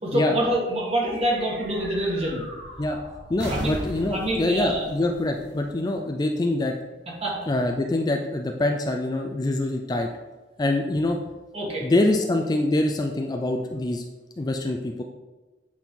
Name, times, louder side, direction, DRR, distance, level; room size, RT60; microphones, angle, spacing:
voice 1, 0.0-2.4 3.5-3.7 4.1-4.9 7.2-7.4 11.5-11.9, right 1 dB, 35° right, -2 dB, 1.6 m, -26 dB
sound 1, 0.7-6.4, right 1 dB, 80° right, 1.7 m, -39 dB
voice 2, 3.3-6.7 7.5-10.1 10.6-11.2 11.8-14.0 14.4-15.0, left 2 dB, 20° left, 3 dB, 0.4 m, -24 dB
8.2 x 4.4 x 3.7 m, 1.2 s
head